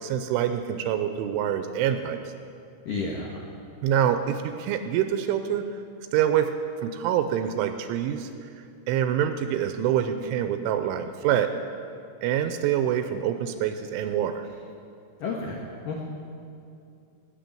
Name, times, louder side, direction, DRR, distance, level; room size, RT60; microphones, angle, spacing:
voice 1, 0.0-2.2 3.8-5.7 6.1-6.5 6.8-8.3 8.9-11.5 12.2-14.5, right 10 dB, 85° right, 8 dB, 3.0 m, -25 dB
voice 2, 2.9-3.4 15.2-16.1, left 3 dB, 80° left, -1 dB, 1.9 m, -32 dB
20.0 x 6.9 x 9.2 m, 2.5 s
omnidirectional pair, 5.9 m